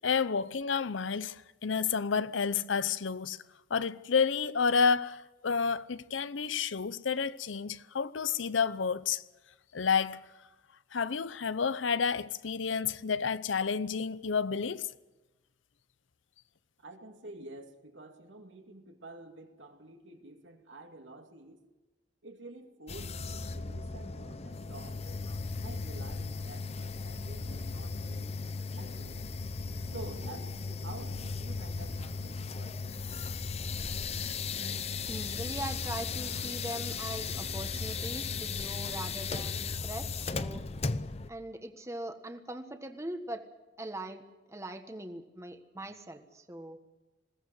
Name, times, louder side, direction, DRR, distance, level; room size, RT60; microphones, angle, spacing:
voice 1, 0.0-3.4 3.7-9.2 9.7-10.2 10.9-14.9, left 6 dB, 85° left, 0.7 m, -30 dB
voice 2, 16.8-21.6 22.2-25.0 25.6-28.4 28.7-29.3 29.9-33.2, right 2 dB, 80° right, 2.5 m, -49 dB
sound 1, 22.9-41.3, left 4 dB, 35° left, 0.7 m, -36 dB
voice 3, 34.5-40.6 41.3-43.4 43.8-44.2 44.5-46.8, right 1 dB, 15° right, 1.4 m, -41 dB
21.0 x 17.5 x 7.8 m
head